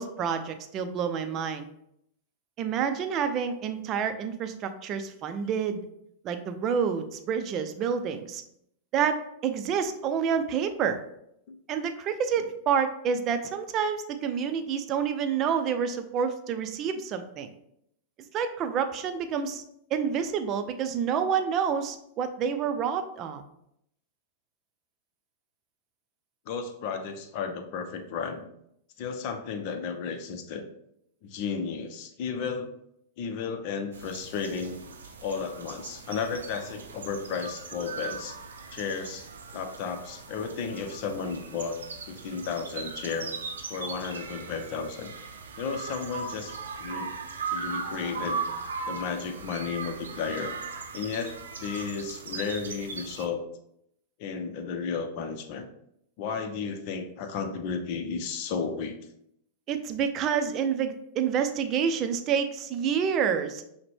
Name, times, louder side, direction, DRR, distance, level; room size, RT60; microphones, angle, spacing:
voice 1, 0.0-1.6 2.6-5.9 6.2-8.4 8.9-9.2 9.4-11.0 11.7-17.5 18.3-19.6 19.9-23.4 59.7-63.6, right 7 dB, 40° right, 8 dB, 0.5 m, -28 dB
voice 2, 26.5-28.5 29.0-30.6 31.2-32.7 33.2-34.8 35.2-38.4 38.7-39.3 39.5-41.8 42.1-43.3 43.7-45.1 45.6-47.1 47.5-48.4 48.9-50.5 50.9-51.3 51.6-53.4 54.2-55.7 56.2-59.0, left 5 dB, 55° left, 7 dB, 0.6 m, -33 dB
sound 1, 33.9-53.3, right 5 dB, 85° right, 0.5 m, -38 dB
5.8 x 2.1 x 3.4 m, 0.75 s
hypercardioid pair, 105°, 0 cm